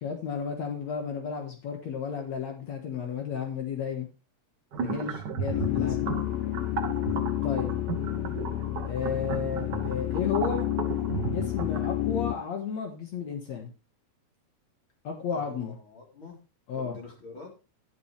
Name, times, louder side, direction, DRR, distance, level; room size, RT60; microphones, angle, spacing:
voice 1, 0.0-4.1 4.8-6.1 7.4-7.7 8.9-10.6 11.3-13.7 15.0-15.8 16.7-17.0, left 6 dB, 65° left, 3 dB, 2.7 m, -33 dB
voice 2, 4.7-5.2 5.5-6.1 15.3-16.4 16.7-17.5, left 3 dB, 40° left, 0 dB, 4.4 m, -46 dB
sound 1, 4.7-11.9, right 6 dB, 75° right, 1.0 m, -35 dB
sound 2, 5.5-12.4, left 13 dB, 80° left, 1.5 m, -30 dB
10.5 x 10.0 x 3.3 m, 0.31 s
omnidirectional pair, 3.5 m